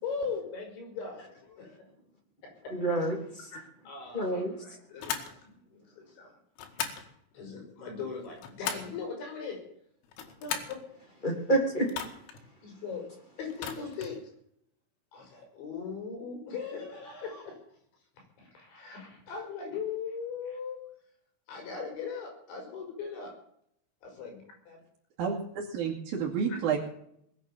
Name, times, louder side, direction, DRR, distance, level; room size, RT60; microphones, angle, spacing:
voice 1, 0.0-1.8 2.6-2.7 3.5-5.2 5.5-6.3 6.7-6.9 7.3-9.6 10.4-10.8 12.6-13.1 13.4-14.2 15.1-17.6 18.4-20.8 21.5-23.4 24.0-24.8 26.5-26.6, left 5 dB, 65° left, 3 dB, 7.4 m, -39 dB
voice 2, 2.7-3.5 4.1-4.8 11.2-12.2, right 1 dB, 10° left, 2 dB, 2.5 m, -29 dB
sound 1, 5.0-5.3 6.6-7.1 8.1-9.0 10.0-10.8 11.9-12.4 13.5-14.2, left 8 dB, 85° left, 4.6 m, -37 dB
voice 3, 25.2-26.8, right 6 dB, 55° right, -5 dB, 3.7 m, -30 dB
21.0 x 8.4 x 7.3 m, 0.70 s
omnidirectional pair, 5.8 m